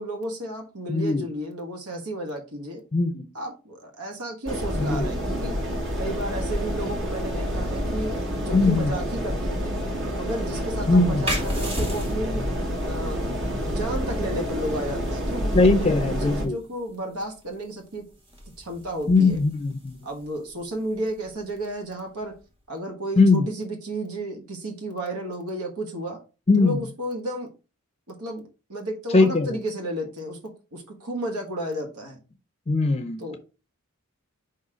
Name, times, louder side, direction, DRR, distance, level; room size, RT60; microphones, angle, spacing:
voice 1, 0.0-2.8 3.3-5.6 6.0-9.8 10.1-12.4 12.8-13.4 13.6-18.1 18.6-19.4 20.0-22.3 22.7-26.2 26.6-27.5 28.1-30.4 30.7-32.2 33.2-33.4, right 1 dB, 85° right, 1.6 m, -33 dB
voice 2, 0.9-1.2 2.9-3.3 4.7-5.1 8.5-9.0 10.9-11.3 15.5-16.6 19.1-20.0 23.2-23.5 26.5-26.8 29.1-29.6 32.7-33.2, left 3 dB, 25° left, 0.5 m, -20 dB
sound 1, 4.5-16.5, equal, 55° right, 1.8 m, -28 dB
sound 2, 11.2-22.5, equal, 25° right, 2.0 m, -37 dB
5.3 x 4.1 x 5.0 m
head